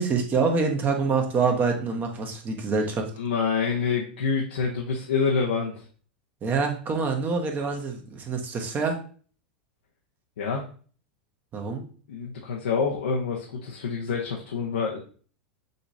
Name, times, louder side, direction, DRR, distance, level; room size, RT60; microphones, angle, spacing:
voice 1, 0.0-3.1 6.4-9.0 11.5-11.8, right 4 dB, 30° right, 3 dB, 1.1 m, -26 dB
voice 2, 3.2-5.9 10.4-10.7 12.1-15.0, left 5 dB, 80° left, -1 dB, 0.8 m, -27 dB
6.5 x 3.0 x 2.7 m, 0.42 s
hypercardioid pair, 100°, 6 cm